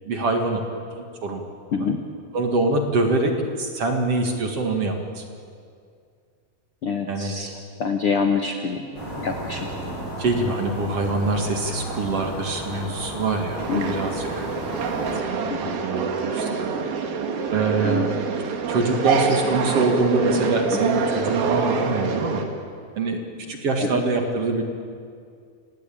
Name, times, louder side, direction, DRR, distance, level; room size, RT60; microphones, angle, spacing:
voice 1, 0.1-0.6 1.2-1.5 1.8-1.9 2.3-5.2 7.1-7.4 10.2-14.5 15.3-15.5 15.8-16.7 17.5-18.2 18.7-22.4 23.0-23.2 23.5-24.6, right 3 dB, 45° right, 3 dB, 2.5 m, -24 dB
voice 2, 6.8-9.7 13.7-14.0 15.5-15.8 17.8-18.2 20.7-20.8 23.8-24.0, left 5 dB, 75° left, 5 dB, 1.3 m, -26 dB
sound 1, 8.9-15.2, right 1 dB, 15° left, 7.2 m, -33 dB
sound 2, 13.6-22.5, right 5 dB, 70° right, 3.7 m, -26 dB
29.5 x 17.0 x 8.8 m, 2.2 s
omnidirectional pair, 4.3 m